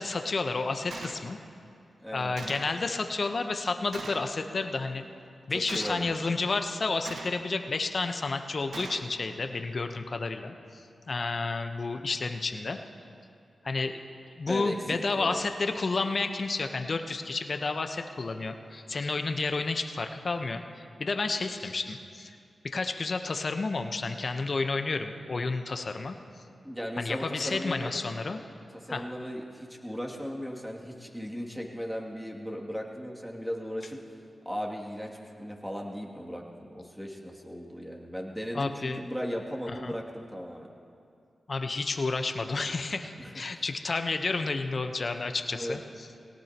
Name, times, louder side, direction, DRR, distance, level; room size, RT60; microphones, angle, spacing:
voice 1, 0.0-1.4 2.1-5.1 5.5-12.8 13.6-14.0 14.4-20.6 21.0-22.3 22.6-26.2 27.0-28.4 28.9-29.0 38.5-39.0 39.7-39.9 41.5-45.8, left 3 dB, 55° left, 6 dB, 1.0 m, -31 dB
Gunshot gunfire, 0.9-1.2 2.4-2.8 3.9-4.3 5.7-6.1 7.0-7.5 8.7-9.1, right 3 dB, 75° right, 1.2 m, -41 dB
voice 2, 2.0-2.3 5.5-6.1 14.5-15.4 26.6-27.9 28.7-34.0 34.4-40.7 43.2-43.6 45.5-45.8, equal, 5° right, -1 dB, 2.6 m, -37 dB
22.0 x 18.0 x 3.0 m, 2.5 s
cardioid pair, 40°, 0 cm